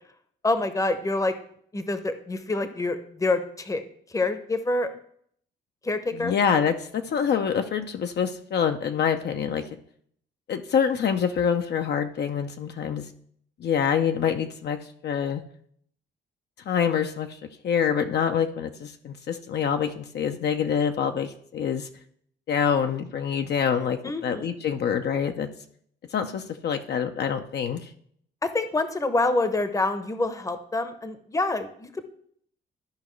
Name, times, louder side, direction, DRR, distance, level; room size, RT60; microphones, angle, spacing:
voice 1, 0.4-1.3 1.7-3.8 4.1-4.9 5.8-6.4 24.0-24.6 28.4-32.1, left 2 dB, 15° left, 10 dB, 0.8 m, -26 dB
voice 2, 6.1-9.6 10.5-13.1 13.6-15.4 16.7-17.4 17.6-21.9 22.5-25.5 26.1-27.9, left 7 dB, 55° left, 6 dB, 0.6 m, -26 dB
13.0 x 5.0 x 3.1 m, 0.64 s
cardioid pair, 90°, 20 cm